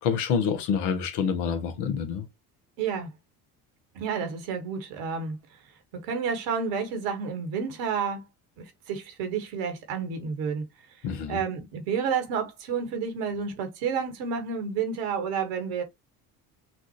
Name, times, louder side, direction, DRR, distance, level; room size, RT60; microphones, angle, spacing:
voice 1, 0.0-2.3 11.0-11.4, left 6 dB, 65° left, 1.4 m, -27 dB
voice 2, 2.8-3.1 3.9-5.4 6.0-8.3 8.6-10.6 11.3-15.8, right 6 dB, 70° right, 1.6 m, -30 dB
6.0 x 2.6 x 2.9 m
hypercardioid pair, 65°, 45 cm